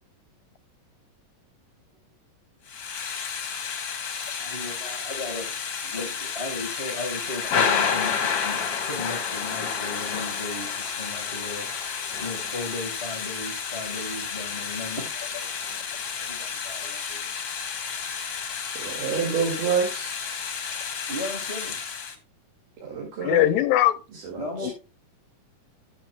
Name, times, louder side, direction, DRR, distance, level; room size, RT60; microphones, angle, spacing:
Thunder / Rain, 2.7-22.2, left 6 dB, 55° left, 1.4 m, -30 dB
voice 1, 4.4-5.5 5.8-8.1 8.4-8.6 8.9-11.7 12.2-15.5 16.3-17.3 21.1-21.8 24.4-24.7, left 2 dB, 35° left, 1.0 m, -36 dB
voice 2, 18.8-20.1 22.8-23.5 24.2-24.7, right 6 dB, 75° right, 3.8 m, -28 dB
voice 3, 23.2-24.0 24.6-24.7, left 14 dB, 75° left, 1.8 m, -20 dB
14.5 x 6.8 x 2.2 m
omnidirectional pair, 3.8 m